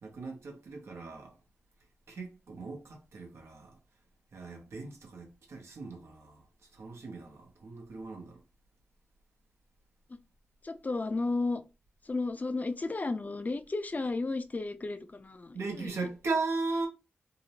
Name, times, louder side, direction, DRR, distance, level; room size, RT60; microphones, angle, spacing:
voice 1, 0.0-1.3 2.1-3.7 4.3-6.4 6.8-8.4 15.5-16.9, right 3 dB, 85° right, 0.8 m, -37 dB
voice 2, 10.6-11.6 12.0-16.1, left 3 dB, 40° left, 0.4 m, -33 dB
2.8 x 2.0 x 2.8 m
cardioid pair, 45°, 4 cm